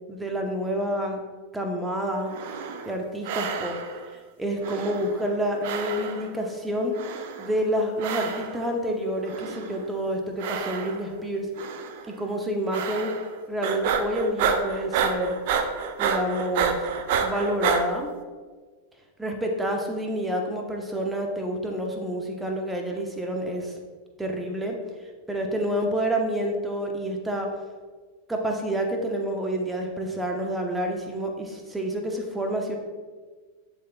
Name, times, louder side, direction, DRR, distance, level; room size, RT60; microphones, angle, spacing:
voice 1, 0.1-1.2 1.5-2.3 2.8-3.8 4.4-7.0 7.4-11.5 12.1-13.2 13.5-15.4 16.0-16.9 17.2-18.1 19.2-23.8 24.2-24.8 25.3-27.5 28.3-32.8, equal, 5° right, 2 dB, 0.9 m, -28 dB
sound 1, 2.2-3.0 3.2-4.1 4.6-5.4 5.6-6.4 6.9-7.6 8.0-8.7 9.2-9.9 10.4-11.2 11.6-12.0 12.7-13.3 13.6-17.8, right 7 dB, 50° right, 0.5 m, -29 dB
10.5 x 4.1 x 2.3 m, 1.4 s
figure-of-eight pair, 90°, 0 cm